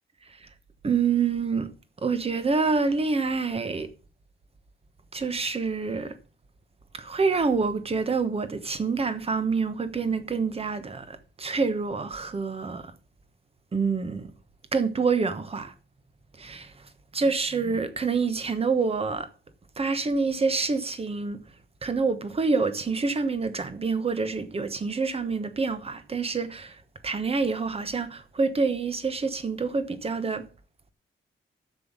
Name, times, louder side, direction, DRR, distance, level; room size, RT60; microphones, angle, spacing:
voice 1, 0.8-1.7 2.0-3.9 5.1-6.2 6.9-12.9 13.7-14.3 14.7-15.7 16.4-16.7 17.1-19.3 19.8-21.4 21.8-26.8 27.0-30.5, right 4 dB, 30° right, 1.1 m, -27 dB
7.8 x 7.3 x 7.5 m
wide cardioid pair, 160°, 21 cm